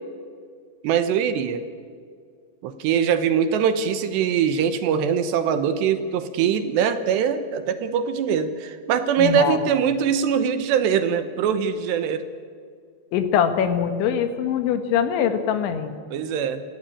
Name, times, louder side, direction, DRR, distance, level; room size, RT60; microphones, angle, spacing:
voice 1, 0.8-1.6 2.6-12.3 16.1-16.6, right 7 dB, 75° right, 10 dB, 3.1 m, -22 dB
voice 2, 9.2-9.6 13.1-16.0, left 8 dB, 85° left, 8 dB, 3.9 m, -22 dB
28.5 x 15.0 x 8.6 m, 2.1 s
omnidirectional pair, 5.2 m